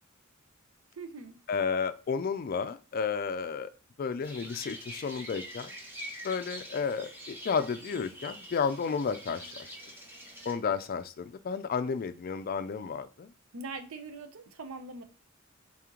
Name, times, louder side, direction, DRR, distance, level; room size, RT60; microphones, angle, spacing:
voice 1, 1.0-1.4 13.5-15.0, right 3 dB, 90° right, 0.7 m, -42 dB
voice 2, 1.5-3.7 4.0-5.7 6.2-9.7 10.5-13.3, left 5 dB, 45° left, 0.3 m, -32 dB
sound 1, 4.2-10.5, equal, 10° right, 1.0 m, -45 dB
4.1 x 2.9 x 3.7 m
head